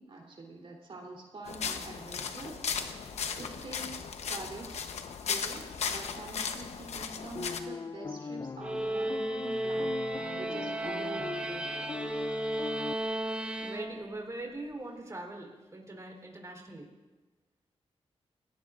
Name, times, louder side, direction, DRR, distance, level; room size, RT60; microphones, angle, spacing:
voice 1, 0.0-2.9 3.4-4.9 5.2-10.0 10.4-11.7, right 2 dB, 55° right, -1 dB, 3.4 m, -45 dB
sound 1, 1.5-7.6, left 6 dB, 90° left, 1.0 m, -36 dB
sound 2, 7.4-12.9, left 4 dB, 35° left, 0.4 m, -40 dB
sound 3, 8.6-14.3, right 1 dB, 10° right, 1.3 m, -34 dB
voice 2, 13.6-16.9, right 2 dB, 30° right, 0 dB, 3.7 m, -42 dB
27.5 x 18.5 x 2.5 m, 1.2 s
cardioid pair, 75°, 11 cm